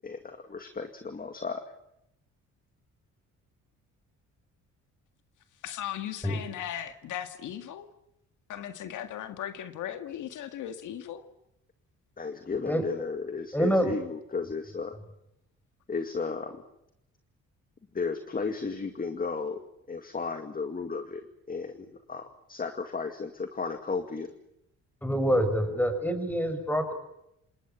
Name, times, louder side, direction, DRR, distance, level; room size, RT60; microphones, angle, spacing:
voice 1, 0.0-1.6 12.2-15.0 15.9-16.6 17.9-19.6 19.9-24.3, left 4 dB, 30° left, 2.2 m, -34 dB
voice 2, 5.6-7.9 8.5-11.3, left 10 dB, 80° left, 2.0 m, -37 dB
voice 3, 13.5-13.9 25.0-26.9, equal, 5° left, 5.8 m, -26 dB
28.0 x 19.0 x 9.0 m
cardioid pair, 90°, 30 cm